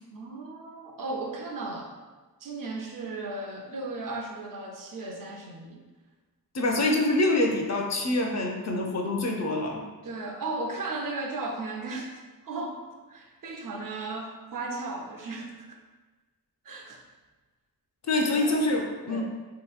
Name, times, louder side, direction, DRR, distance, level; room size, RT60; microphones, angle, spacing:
voice 1, 0.1-1.9 2.4-5.8 10.0-12.1 12.4-12.8 13.1-15.8 16.6-17.0 18.2-18.6 19.1-19.2, right 2 dB, 60° right, 1 dB, 0.6 m, -36 dB
voice 2, 6.5-9.8 18.0-19.2, left 2 dB, 45° left, 1 dB, 0.5 m, -25 dB
3.0 x 2.8 x 2.4 m, 1.3 s
wide cardioid pair, 80°, 38 cm